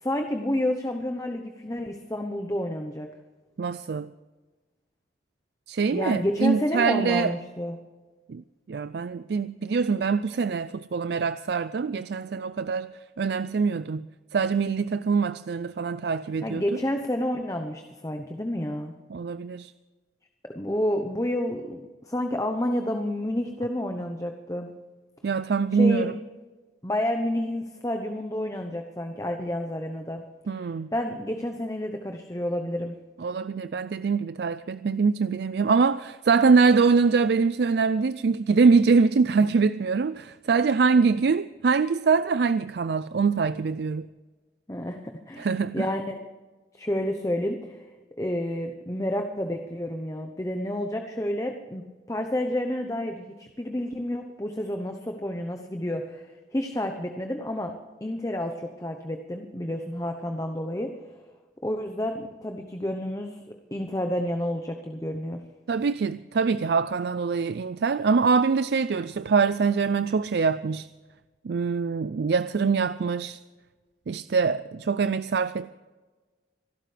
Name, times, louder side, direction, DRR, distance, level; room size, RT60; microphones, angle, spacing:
voice 1, 0.0-3.1 5.9-7.8 16.4-18.9 20.4-24.7 25.7-26.1 26.8-30.2 30.6-33.0 44.7-46.2 46.7-47.9 48.2-57.7 58.0-61.0 61.6-63.4 63.7-65.4, left 1 dB, 15° left, 0.9 m, -30 dB
voice 2, 3.6-4.1 5.7-7.3 8.3-12.9 13.2-14.1 14.3-16.8 19.1-19.7 25.2-26.1 30.5-30.9 33.2-44.1 45.4-45.9 65.7-70.9 71.4-73.4 74.1-75.7, right 5 dB, 60° right, 0.4 m, -24 dB
27.0 x 12.5 x 3.4 m
head